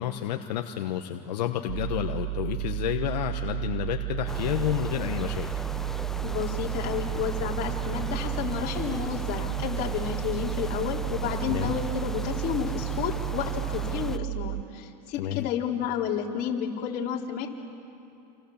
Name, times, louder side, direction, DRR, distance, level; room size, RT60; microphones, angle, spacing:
voice 1, 0.0-5.5 11.5-11.7 15.2-15.5, left 11 dB, 85° left, 5 dB, 1.2 m, -30 dB
sound 1, 1.7-14.6, right 22 dB, 80° right, 0.8 m, -32 dB
sound 2, 4.3-14.2, left 1 dB, ahead, 0.8 m, -37 dB
voice 2, 6.2-17.5, left 8 dB, 50° left, -1 dB, 4.0 m, -31 dB
29.0 x 28.0 x 7.3 m, 2.8 s
supercardioid pair, 120°, 21 cm